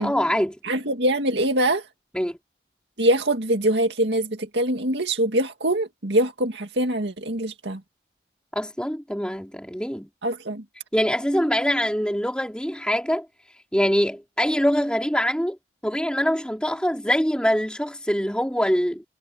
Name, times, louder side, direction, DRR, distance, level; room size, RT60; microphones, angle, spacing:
voice 1, 0.0-0.6 2.1-2.4 8.5-10.1 10.9-13.3 13.7-15.6 15.8-19.0, equal, 5° left, 3.5 m, -24 dB
voice 2, 0.6-1.8 3.0-7.8 10.2-10.6, right 1 dB, 75° right, 2.2 m, -23 dB
head